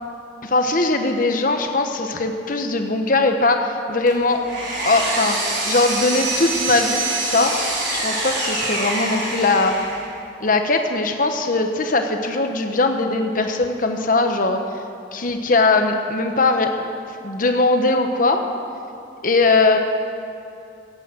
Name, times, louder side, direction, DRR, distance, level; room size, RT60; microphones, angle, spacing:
voice 1, 0.4-4.4 4.8-7.6 7.9-9.7 10.4-14.6 15.1-16.9 17.2-18.4 19.2-19.8, left 3 dB, 45° left, 5 dB, 1.1 m, -20 dB
Power tool, 4.1-10.1, right 2 dB, 90° right, 4.6 m, -25 dB
16.5 x 8.9 x 7.6 m, 2.6 s
head